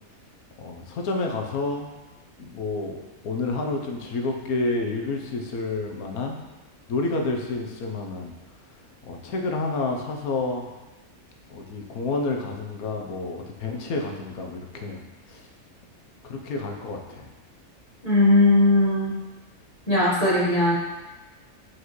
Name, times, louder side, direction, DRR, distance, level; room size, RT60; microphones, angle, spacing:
voice 1, 0.6-1.9 2.4-6.4 6.9-8.3 9.0-10.6 11.5-15.0 15.3-15.4 16.2-17.3, left 3 dB, 90° left, 2 dB, 1.3 m, -29 dB
voice 2, 18.0-19.1 19.9-20.8, left 2 dB, 25° left, -6 dB, 1.3 m, -19 dB
8.0 x 4.7 x 3.1 m, 1.2 s
omnidirectional pair, 1.5 m